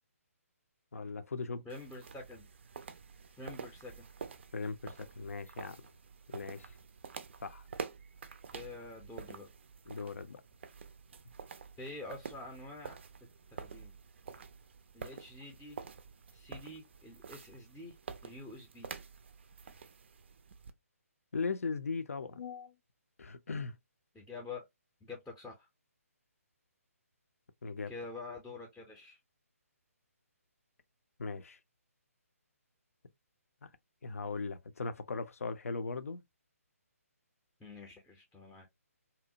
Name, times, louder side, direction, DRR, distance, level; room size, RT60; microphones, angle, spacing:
voice 1, 0.9-1.6 4.5-5.8 6.3-6.7 7.4-7.6 9.9-10.4 21.3-22.8 23.2-23.7 27.6-27.9 31.2-31.6 33.6-33.7 34.0-36.2, left 4 dB, 65° left, 0.4 m, -38 dB
voice 2, 1.7-2.5 3.4-4.1 8.5-9.5 11.8-13.0 13.5-13.9 14.9-15.8 16.3-18.0 18.2-18.9 24.1-24.7 25.0-25.7 27.9-29.2 37.6-38.7, left 3 dB, 5° left, 0.5 m, -47 dB
sound 1, 1.7-20.7, right 6 dB, 50° right, 0.4 m, -48 dB
2.7 x 2.1 x 2.6 m
figure-of-eight pair, 140°, 8 cm